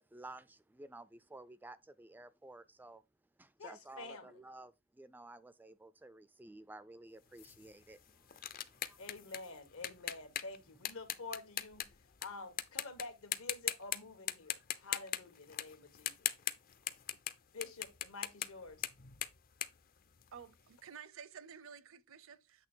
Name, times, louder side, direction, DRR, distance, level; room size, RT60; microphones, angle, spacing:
voice 1, 0.0-3.0 3.4-9.4, right 2 dB, 10° right, 0.3 m, -54 dB
voice 2, 3.6-4.3 9.0-11.8 12.2-16.3 17.5-18.9, left 3 dB, 75° left, 1.5 m, -48 dB
sound 1, 7.4-12.3 12.6-13.0 13.3-14.0 14.3-20.6, left 11 dB, 45° left, 0.5 m, -40 dB
voice 3, 20.3-22.7, right 7 dB, 70° right, 0.6 m, -52 dB
8.3 x 3.2 x 4.4 m
head